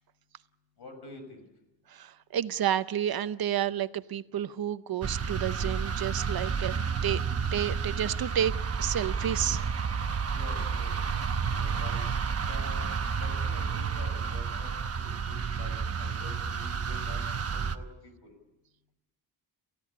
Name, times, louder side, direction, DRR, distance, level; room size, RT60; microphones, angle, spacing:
voice 1, 0.8-1.5 10.3-10.9 11.4-12.0 12.5-17.3 17.5-18.3, left 2 dB, 60° left, 6 dB, 6.6 m, -47 dB
voice 2, 1.9-7.2 7.5-8.5 8.8-9.6, right 10 dB, 55° right, 13 dB, 0.7 m, -30 dB
sound 1, 5.0-17.8, right 6 dB, 35° right, 1.0 m, -31 dB
28.5 x 15.5 x 8.5 m, 0.97 s
wide cardioid pair, 160°, 44 cm